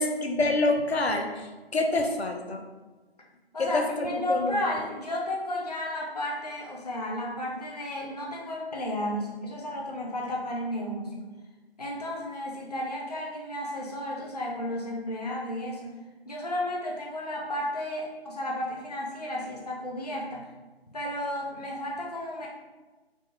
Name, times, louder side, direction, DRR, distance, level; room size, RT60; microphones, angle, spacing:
voice 1, 0.0-1.5 1.7-2.6 3.6-4.6, left 2 dB, 80° left, 3 dB, 0.6 m, -26 dB
voice 2, 3.5-11.4 11.8-15.9 16.3-20.5 20.9-22.5, left 1 dB, 40° left, -3 dB, 0.5 m, -33 dB
4.1 x 2.1 x 3.4 m, 1.2 s
figure-of-eight pair, 165°, 31 cm